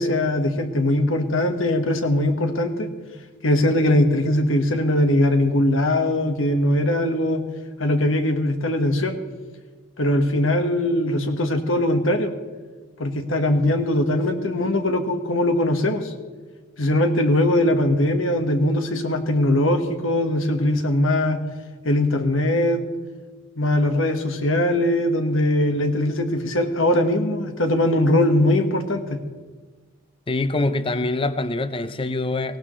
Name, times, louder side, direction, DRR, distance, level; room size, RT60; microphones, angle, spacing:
voice 1, 0.0-2.9 3.4-7.4 7.8-9.2 10.0-12.3 13.0-16.1 16.8-21.4 21.8-22.8 23.6-29.2, left 1 dB, 80° left, 6 dB, 1.5 m, -21 dB
voice 2, 30.3-32.6, left 2 dB, 25° left, 12 dB, 0.6 m, -24 dB
18.5 x 16.5 x 3.2 m, 1.4 s
head